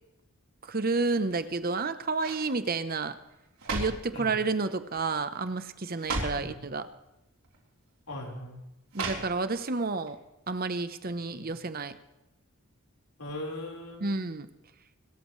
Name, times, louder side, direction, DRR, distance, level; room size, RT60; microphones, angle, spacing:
voice 1, 0.7-3.1 3.7-6.9 8.9-10.2 10.5-11.9 14.0-14.5, right 3 dB, 40° right, 11 dB, 0.9 m, -30 dB
sound 1, 1.3-1.7 2.2-2.5 3.3-4.1 4.9-5.2 5.5-5.6 5.9-6.5 7.4-7.6 8.9-9.7 10.1-10.2, right 3 dB, 80° right, 4.0 m, -35 dB
voice 2, 8.1-8.6 11.3-11.5 13.2-14.1, left 1 dB, 80° left, -1 dB, 4.5 m, -39 dB
27.0 x 14.0 x 3.2 m, 0.94 s
head